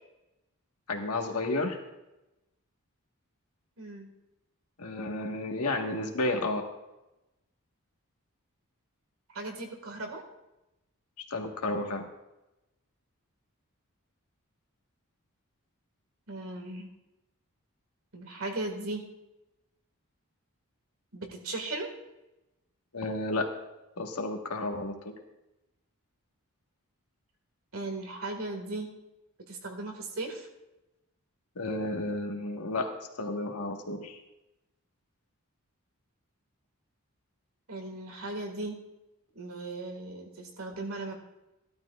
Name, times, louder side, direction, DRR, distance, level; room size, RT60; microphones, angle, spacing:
voice 1, 0.9-1.8 4.8-6.6 11.3-12.0 22.9-23.5 24.0-25.1 31.5-32.9 33.2-34.2, left 2 dB, 85° left, 3 dB, 1.5 m, -32 dB
voice 2, 3.8-4.1 9.3-10.2 16.3-16.9 18.1-19.1 21.1-21.9 27.7-28.9 29.5-30.5 37.7-38.8 39.4-41.1, right 2 dB, 70° right, 4 dB, 1.9 m, -37 dB
16.0 x 12.0 x 2.4 m, 0.96 s
head